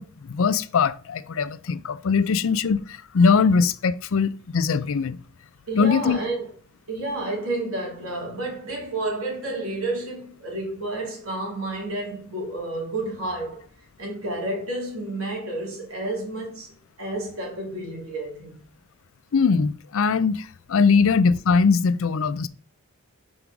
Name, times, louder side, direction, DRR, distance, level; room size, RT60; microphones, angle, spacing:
voice 1, 0.0-5.2 5.7-6.2 19.3-22.5, left 5 dB, 65° left, 0.5 m, -21 dB
voice 2, 5.7-6.5 6.9-13.6 14.0-16.7 17.0-18.6, right 2 dB, 75° right, 3.1 m, -30 dB
5.3 x 4.8 x 5.9 m
head